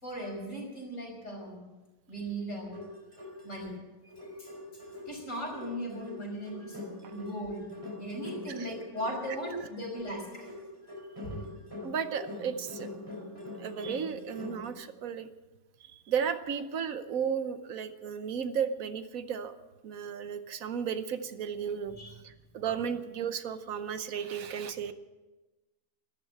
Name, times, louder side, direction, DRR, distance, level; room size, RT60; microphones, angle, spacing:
voice 1, 0.0-1.6 2.1-2.8 3.4-3.7 4.4-4.5 5.0-6.8 7.1-7.7 8.0-10.5 11.2-11.4 22.0-22.1, right 1 dB, 60° left, -1 dB, 6.0 m, -37 dB
sound 1, 2.7-3.7 4.1-14.7, left 2 dB, 15° right, 3.3 m, -44 dB
voice 2, 11.8-12.9 13.6-15.3 15.8-19.5 19.8-22.0 22.2-24.9, right 7 dB, 75° right, 11 dB, 1.3 m, -34 dB
13.0 x 12.0 x 8.5 m, 1.2 s
omnidirectional pair, 1.5 m